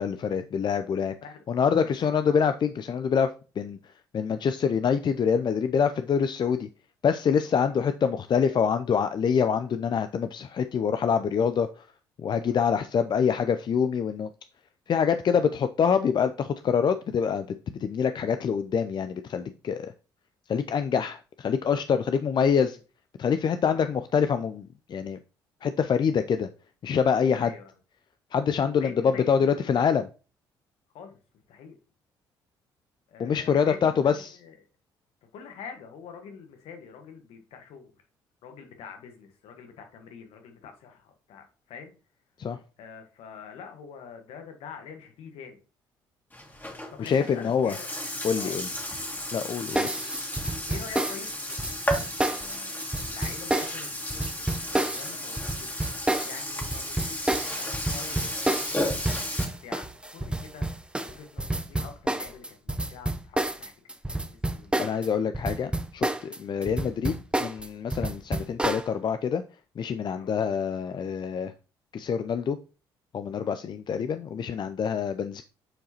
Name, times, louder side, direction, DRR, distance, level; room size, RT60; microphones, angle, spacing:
voice 1, 0.0-1.1 1.5-3.3 3.6-3.8 4.1-6.7 7.0-11.8 12.2-14.3 14.9-17.5 17.8-19.9 20.5-22.8 23.2-25.2 25.6-26.5 26.8-27.5 28.3-30.0 33.2-34.3 42.4-42.6 47.0-47.7 48.2-48.7 49.3-50.0 64.8-69.4 69.8-71.5 71.9-72.6 73.1-75.4, left 7 dB, 45° left, 10 dB, 0.5 m, -25 dB
voice 2, 1.8-2.1 7.4-7.7 12.5-12.7 22.6-22.8 23.7-23.9 27.4-27.7 28.6-29.9 30.9-31.2 31.5-31.8 33.1-34.6 35.3-37.9 38.4-41.9 42.8-45.6 46.9-47.9 48.4-48.9 50.7-55.8 56.2-65.0 68.1-68.4 70.2-70.3 73.3-73.5, left 6 dB, 65° left, 5 dB, 1.4 m, -46 dB
Burping eructation, 46.3-59.4, left 1 dB, 15° left, 2.1 m, -34 dB
sound 1, 49.7-65.1 65.3-68.9, right 1 dB, 10° right, 0.8 m, -29 dB
7.6 x 4.7 x 2.9 m, 0.34 s
hypercardioid pair, 50°, 11 cm